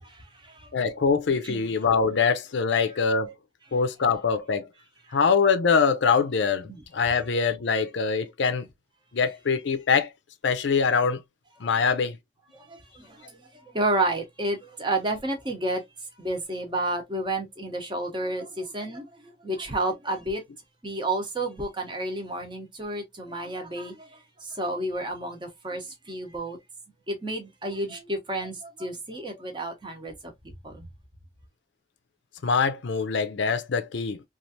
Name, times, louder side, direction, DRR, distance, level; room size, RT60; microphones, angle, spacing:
voice 1, 0.0-0.7 1.4-1.7 6.7-6.8 11.8-11.9 12.5-13.4 13.7-15.8 16.2-19.0 19.4-20.4 20.8-24.1 24.4-26.6 27.1-30.1 30.4-30.8, right 2 dB, 25° right, 0.8 m, -31 dB
voice 2, 0.7-3.3 3.7-4.7 5.1-8.7 9.1-10.1 10.4-11.2 11.6-12.2 32.4-34.2, left 5 dB, 65° left, 0.5 m, -23 dB
3.1 x 2.4 x 2.7 m
head